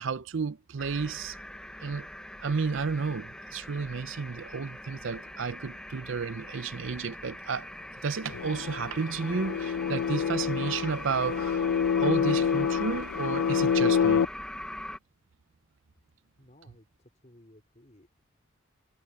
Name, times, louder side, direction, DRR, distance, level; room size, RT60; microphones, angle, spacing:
voice 1, 0.0-1.4 1.8-2.1 2.4-7.7 8.0-11.7 12.0-14.2, right 5 dB, 70° right, 0.6 m, -32 dB
sound 1, 0.8-15.0, left 1 dB, 5° left, 0.9 m, -42 dB
sound 2, 8.3-14.2, left 7 dB, 85° left, 0.3 m, -27 dB
voice 2, 16.4-18.3, left 1 dB, 35° left, 4.3 m, -58 dB
head